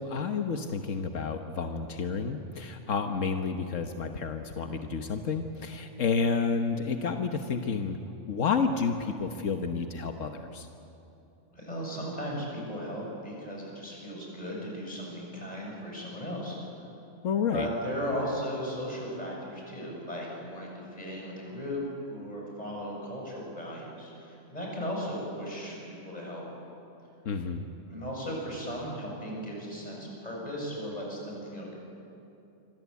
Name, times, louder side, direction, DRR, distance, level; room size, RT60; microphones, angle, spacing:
voice 1, 0.0-8.0 8.3-10.7 17.2-17.7 27.2-27.7, left 5 dB, 90° left, 5 dB, 1.5 m, -30 dB
voice 2, 11.5-16.6 17.5-26.4 27.9-31.7, equal, 30° left, -2 dB, 7.5 m, -36 dB
27.5 x 24.5 x 8.4 m, 2.8 s
omnidirectional pair, 1.3 m